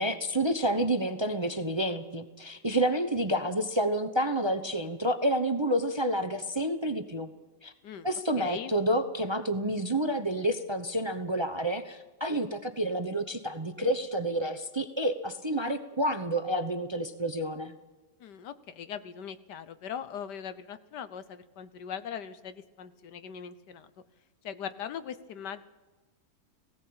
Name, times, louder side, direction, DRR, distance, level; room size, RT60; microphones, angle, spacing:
voice 1, 0.0-7.3 7.6-7.7 8.0-17.7, right 1 dB, 20° right, 9 dB, 0.8 m, -29 dB
voice 2, 8.4-8.7 18.2-23.9 24.4-25.6, left 8 dB, 80° left, 13 dB, 1.6 m, -40 dB
18.5 x 16.5 x 8.7 m, 1.2 s
omnidirectional pair, 1.8 m